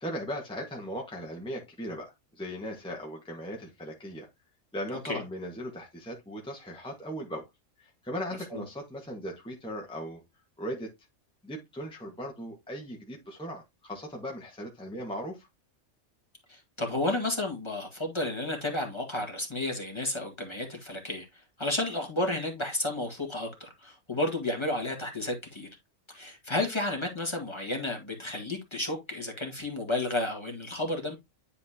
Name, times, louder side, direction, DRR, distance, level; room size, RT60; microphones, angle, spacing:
voice 1, 0.0-4.3 4.7-7.5 7.8-10.2 10.6-10.9 11.4-15.5, equal, 5° left, 1.3 m, -38 dB
voice 2, 16.5-21.3 21.6-25.7 26.1-31.1, left 1 dB, 20° left, 1.8 m, -32 dB
10.0 x 4.2 x 2.8 m
omnidirectional pair, 1.3 m